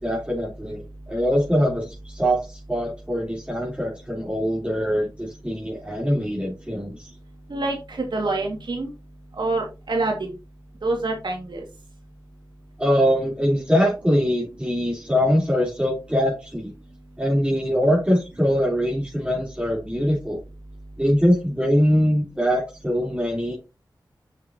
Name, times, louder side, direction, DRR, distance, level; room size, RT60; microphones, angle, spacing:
voice 1, 0.0-7.1 12.8-16.7 17.2-20.4 21.0-23.6, equal, 15° right, -3 dB, 3.5 m, -23 dB
voice 2, 7.5-8.9 9.4-10.1 10.8-11.6, right 2 dB, 70° right, 0 dB, 2.0 m, -26 dB
8.2 x 6.4 x 2.9 m, 0.27 s
cardioid pair, 45°, 8 cm